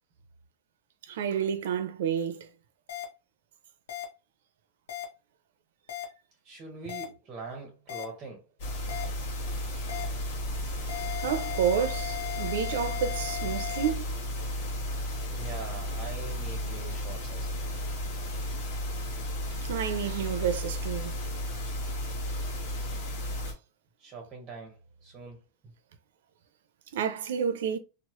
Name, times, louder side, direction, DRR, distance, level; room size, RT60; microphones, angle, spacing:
voice 1, 1.0-2.5 10.8-10.9 11.2-14.1 19.7-21.2 26.9-27.8, right 8 dB, 65° right, 0.5 m, -30 dB
sound 1, 2.9-3.0 3.9-4.0 4.9-5.0 5.9-6.0 6.9-7.0 7.9-8.0 8.9-9.0 9.9-10.0 10.9-13.9, left 12 dB, 80° left, 0.8 m, -37 dB
voice 2, 6.4-8.4 15.3-17.8 24.0-25.4, right 4 dB, 15° right, 0.6 m, -43 dB
sound 2, 8.6-23.5, left 1 dB, 45° left, 1.1 m, -34 dB
3.0 x 2.0 x 2.9 m
supercardioid pair, 180°, 0 cm